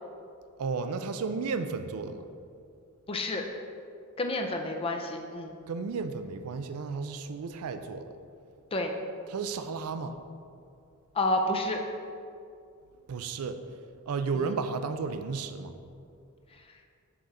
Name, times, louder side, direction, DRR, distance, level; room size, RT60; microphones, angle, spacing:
voice 1, 0.6-2.2 5.7-8.1 9.3-10.2 13.1-13.6 14.1-15.8, right 4 dB, 80° right, 9 dB, 0.4 m, -33 dB
voice 2, 3.1-3.4 4.2-5.5 8.7-8.9 11.1-11.8 14.3-14.5, left 1 dB, 25° left, 3 dB, 0.5 m, -29 dB
5.8 x 4.9 x 4.0 m, 2.4 s
head